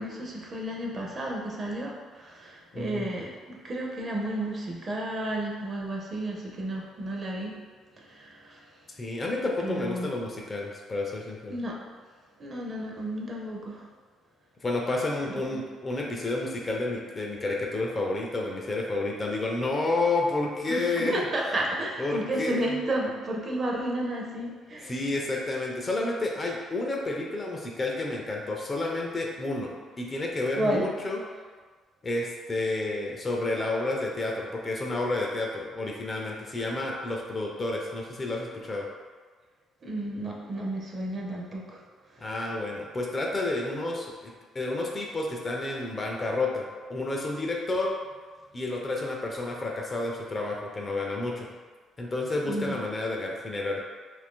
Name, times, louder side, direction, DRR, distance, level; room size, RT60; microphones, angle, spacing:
voice 1, 0.0-7.6 8.0-8.7 9.6-10.1 11.5-11.8 12.4-13.9 20.7-24.9 30.6-30.9 39.8-41.8 42.1-42.3 52.4-52.7, right 1 dB, 30° right, -1 dB, 0.5 m, -32 dB
voice 2, 2.7-3.1 8.9-11.6 14.6-21.3 22.0-22.8 24.8-29.7 30.0-31.2 32.0-38.9 42.2-47.9 48.5-51.5 52.0-53.8, left 2 dB, 25° left, -1 dB, 0.4 m, -30 dB
2.7 x 2.5 x 3.6 m, 1.4 s
cardioid pair, 140°, 0 cm